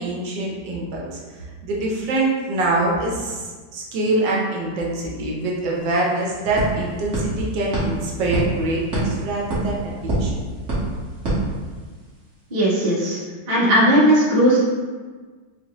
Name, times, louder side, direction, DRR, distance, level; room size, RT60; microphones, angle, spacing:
voice 1, 0.0-9.9 10.2-10.4, right 2 dB, 80° right, -3 dB, 1.4 m, -24 dB
sound 1, 5.8-12.2, right 1 dB, 45° right, 1.4 m, -27 dB
voice 2, 12.5-13.2 13.5-14.6, right 1 dB, 30° right, -8 dB, 0.9 m, -17 dB
5.7 x 2.1 x 2.9 m, 1.4 s
omnidirectional pair, 2.0 m